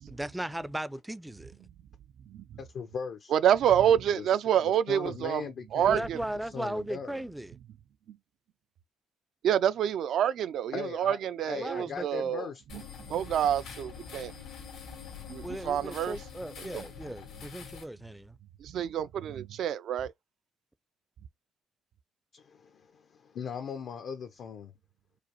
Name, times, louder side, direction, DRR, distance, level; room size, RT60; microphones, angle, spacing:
voice 1, 0.1-1.5 5.9-7.6 11.5-12.3 15.4-18.4, right 1 dB, 5° right, 0.4 m, -37 dB
voice 2, 2.6-3.3 4.1-4.3 4.6-6.1 6.5-7.3 10.7-11.2 11.5-12.6 22.3-24.7, left 6 dB, 65° left, 0.6 m, -39 dB
voice 3, 3.3-6.2 8.1-8.2 9.4-12.5 12.7-12.8 13.1-14.3 15.3-16.2 16.6-16.8 18.6-20.1, right 9 dB, 75° right, 0.4 m, -27 dB
sound 1, 12.7-17.8, left 6 dB, 85° left, 1.8 m, -45 dB
4.9 x 2.1 x 2.9 m
cardioid pair, 90°, 0 cm